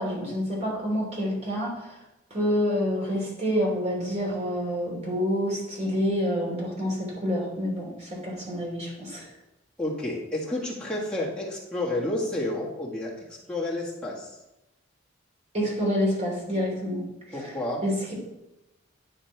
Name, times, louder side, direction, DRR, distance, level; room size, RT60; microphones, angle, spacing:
voice 1, 0.0-1.9 2.3-9.2 15.5-17.0 17.8-18.1, equal, 35° right, -4 dB, 2.7 m, -27 dB
voice 2, 9.8-13.1 13.5-14.4 17.3-17.8, left 1 dB, 5° left, -6 dB, 1.7 m, -30 dB
10.5 x 4.4 x 4.5 m, 0.95 s
head